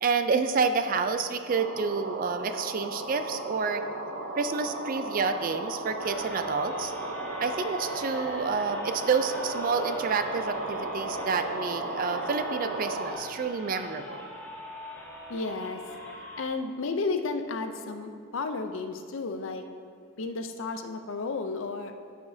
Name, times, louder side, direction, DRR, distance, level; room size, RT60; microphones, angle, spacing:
voice 1, 0.0-3.8 4.3-6.9 7.4-14.3, right 5 dB, 40° right, 9 dB, 0.4 m, -29 dB
sound 1, 1.5-13.1, right 2 dB, 60° right, 0.8 m, -35 dB
sound 2, 6.0-16.5, left 1 dB, 10° left, 0.9 m, -42 dB
voice 2, 15.3-15.8 16.4-19.6 20.2-21.9, left 3 dB, 65° left, 7 dB, 0.5 m, -32 dB
14.0 x 5.0 x 2.7 m, 2.3 s
head